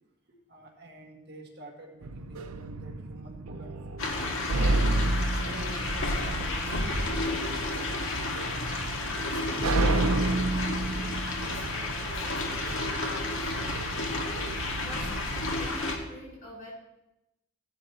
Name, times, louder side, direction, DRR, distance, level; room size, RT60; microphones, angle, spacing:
voice 1, 0.3-4.9 5.4-7.6, right 1 dB, 50° right, 0 dB, 1.9 m, -48 dB
sound 1, 2.0-15.7, right 2 dB, 85° right, 0.7 m, -32 dB
sound 2, 4.0-16.0, left 2 dB, 65° left, 1.8 m, -31 dB
voice 2, 8.4-9.8 10.1-12.9 13.2-13.5 14.3-15.1 15.6-16.7, left 1 dB, 40° left, -4 dB, 5.3 m, -48 dB
16.0 x 11.5 x 3.0 m, 0.91 s
head